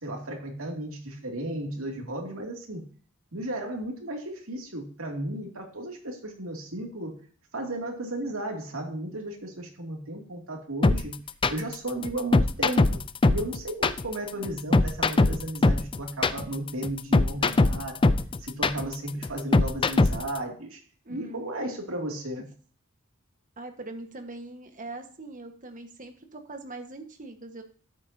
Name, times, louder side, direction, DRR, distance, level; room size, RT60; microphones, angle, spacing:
voice 1, 0.0-2.8 3.3-7.2 7.5-11.2 11.5-13.0 13.3-20.8 21.1-22.5, right 1 dB, 85° right, 2 dB, 2.6 m, -34 dB
sound 1, 10.8-20.4, left 2 dB, 25° left, 0.4 m, -21 dB
voice 2, 21.0-21.4 23.6-27.6, right 2 dB, 40° right, 5 dB, 1.5 m, -41 dB
12.5 x 8.7 x 2.8 m, 0.43 s
head